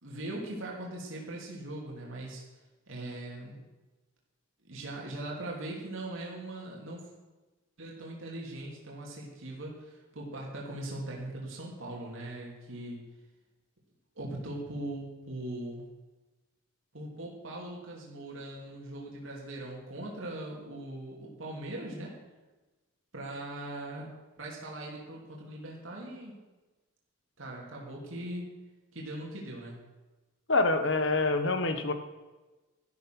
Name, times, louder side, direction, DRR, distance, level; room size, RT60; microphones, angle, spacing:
voice 1, 0.0-2.4 2.9-3.6 4.6-7.1 7.8-13.0 14.2-15.9 16.9-22.1 23.1-24.1 24.4-26.4 27.4-28.5 28.9-29.8, right 1 dB, 65° right, -3 dB, 2.7 m, -40 dB
voice 2, 30.5-31.9, left 3 dB, 55° left, 8 dB, 1.1 m, -26 dB
12.0 x 11.5 x 6.0 m, 1.2 s
head